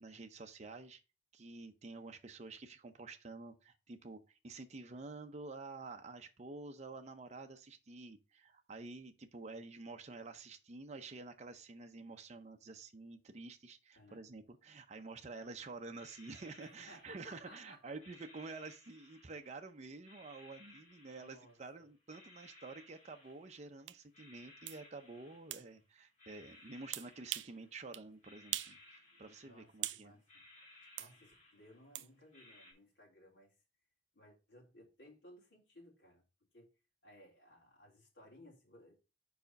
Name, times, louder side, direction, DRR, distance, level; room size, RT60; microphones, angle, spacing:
voice 1, 0.0-1.0 1.3-30.2, right 3 dB, 40° right, 0.6 m, -49 dB
sound 1, 15.3-15.5 15.9-17.6 18.0-19.7 20.0-21.7 22.1-23.7 24.0-25.8 26.2-27.8 28.2-29.9 30.2-32.0 32.3-32.7, left 2 dB, 40° left, 3.1 m, -61 dB
voice 2, 16.6-17.8 21.2-21.9 29.4-30.3 31.0-33.5 34.1-36.2 36.5-36.7 37.0-38.9, left 1 dB, 85° left, 3.4 m, -60 dB
sound 2, 23.9-24.0 24.7-24.8 25.5-25.7 26.9-27.6 27.9-28.1 28.5-28.8 29.1-30.1 31.0-31.1 31.9-32.1, right 14 dB, 80° right, 0.4 m, -41 dB
5.0 x 4.8 x 5.2 m
head